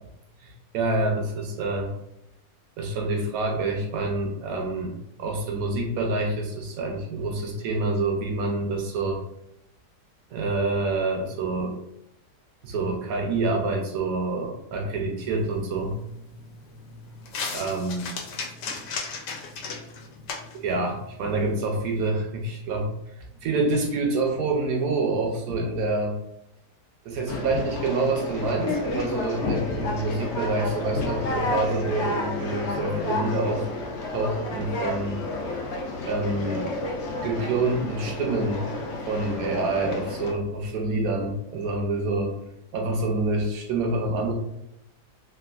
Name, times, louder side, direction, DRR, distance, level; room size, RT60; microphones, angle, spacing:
voice 1, 0.4-1.9 2.8-9.2 10.3-11.8 12.6-16.0 17.5-18.1 20.5-22.9 23.2-26.2 27.1-33.6 34.1-35.2 36.1-36.7 37.2-38.6 39.1-42.3 42.7-44.3, right 2 dB, 70° right, 2 dB, 0.9 m, -27 dB
sound 1, 15.2-22.1, left 4 dB, 85° left, 1.2 m, -37 dB
Conversation, 27.3-40.3, left 2 dB, 70° left, 0.6 m, -31 dB
3.2 x 2.3 x 2.3 m, 0.81 s
omnidirectional pair, 1.8 m